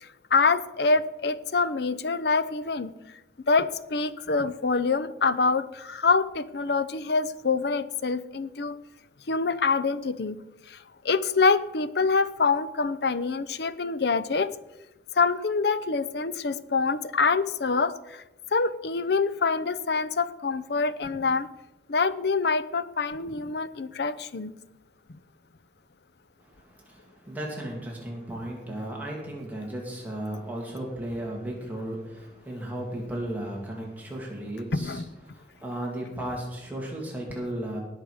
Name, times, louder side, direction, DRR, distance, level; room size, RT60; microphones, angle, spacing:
voice 1, 0.0-2.9 3.5-8.8 9.3-10.4 10.7-10.8 11.0-14.5 15.1-18.2 18.5-21.5 21.9-24.5 34.7-35.0, left 4 dB, 60° left, 14 dB, 0.6 m, -25 dB
voice 2, 26.4-35.0 35.3-37.8, right 1 dB, 10° right, -3 dB, 2.4 m, -35 dB
19.0 x 6.5 x 5.0 m, 0.97 s
head